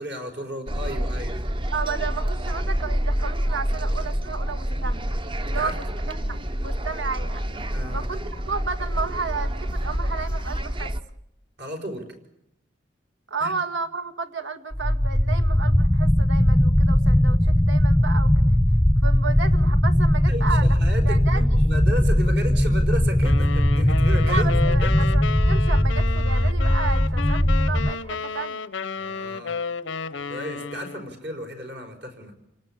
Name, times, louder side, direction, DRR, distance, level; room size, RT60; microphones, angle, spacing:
voice 1, 0.0-1.4 5.4-5.7 7.7-8.1 11.6-12.0 13.4-13.5 20.3-24.9 29.0-29.6 30.3-32.3, equal, 60° right, 5 dB, 4.9 m, -34 dB
sound 1, 0.7-11.0, equal, 25° right, 0.9 m, -27 dB
voice 2, 1.7-5.0 5.4-5.8 6.3-7.4 7.9-10.9 13.3-18.5 19.0-20.8 21.1-21.4 24.2-28.6, right 5 dB, 85° right, 6 dB, 2.0 m, -32 dB
sound 2, 14.7-27.9, left 1 dB, 5° left, 0.8 m, -19 dB
sound 3, 23.2-31.2, left 5 dB, 90° left, 0.8 m, -32 dB
27.5 x 18.5 x 8.8 m, 0.81 s
head